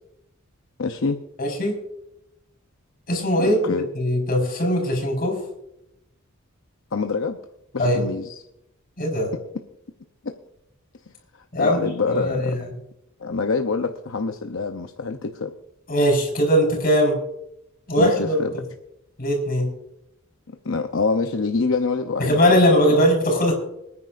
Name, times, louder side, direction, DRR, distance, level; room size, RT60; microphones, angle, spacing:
voice 1, 0.8-1.2 3.4-3.9 6.9-7.4 7.7-8.3 11.6-12.6 13.2-15.5 18.0-18.5 20.6-22.6 22.9-23.0, left 4 dB, 70° left, 5 dB, 0.8 m, -25 dB
voice 2, 1.4-1.8 3.1-5.4 7.8-8.0 9.0-9.3 11.5-11.8 12.1-12.7 15.9-17.2 17.9-18.4 19.2-19.7 22.2-23.5, equal, 45° left, 1 dB, 4.8 m, -20 dB
26.5 x 9.7 x 2.6 m, 0.81 s
head